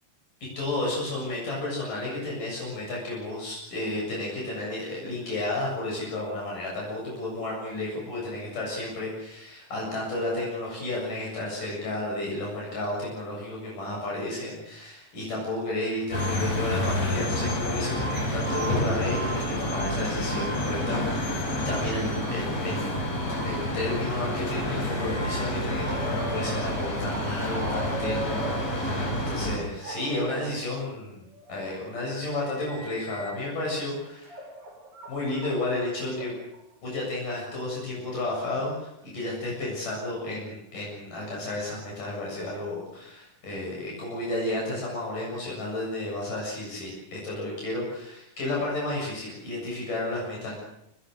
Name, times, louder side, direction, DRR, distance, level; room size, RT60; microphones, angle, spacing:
voice 1, 0.6-22.9 23.4-34.4 35.1-36.3 36.8-50.6, left 2 dB, 70° left, -3 dB, 9.2 m, -32 dB
sound 1, 16.1-29.6, left 1 dB, 50° left, 7.1 m, -29 dB
Moose Elk, 24.6-29.1 29.8-30.6 31.3-33.7 34.2-36.6, right 2 dB, 80° right, 7.2 m, -40 dB
29.0 x 26.0 x 6.6 m, 0.82 s
omnidirectional pair, 3.9 m